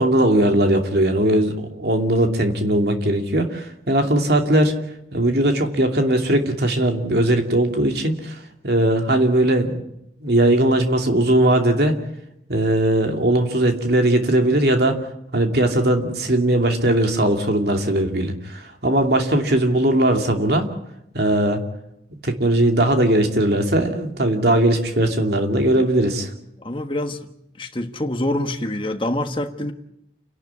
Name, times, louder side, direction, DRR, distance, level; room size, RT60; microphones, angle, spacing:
voice 1, 0.0-4.7 5.1-8.4 8.6-9.7 10.2-11.9 12.5-15.0 15.3-20.7 21.1-21.6 22.1-26.3, right 1 dB, 65° right, 4 dB, 2.7 m, -19 dB
voice 2, 26.6-27.3 27.6-29.7, left 1 dB, 30° left, 6 dB, 1.4 m, -26 dB
29.0 x 12.0 x 9.7 m, 0.83 s
head